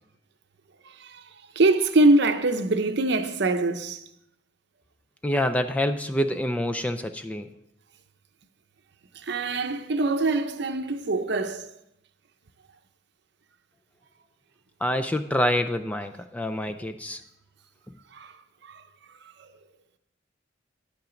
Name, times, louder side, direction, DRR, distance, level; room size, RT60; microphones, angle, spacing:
voice 1, 1.6-4.0 9.3-11.7, right 2 dB, 60° right, 0.7 m, -23 dB
voice 2, 5.2-7.5 14.8-17.2, left 1 dB, 5° left, 0.3 m, -26 dB
10.5 x 8.8 x 3.8 m
head